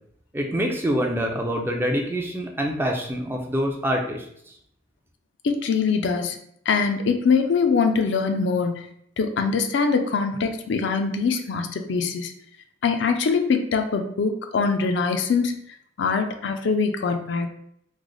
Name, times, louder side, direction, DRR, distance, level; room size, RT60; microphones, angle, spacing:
voice 1, 0.3-4.3, equal, 10° right, 1 dB, 0.3 m, -25 dB
voice 2, 5.4-6.4 6.7-8.8 9.2-12.3 12.8-15.6 16.0-17.5, left 5 dB, 60° left, 6 dB, 0.4 m, -23 dB
3.2 x 2.0 x 3.7 m, 0.69 s
head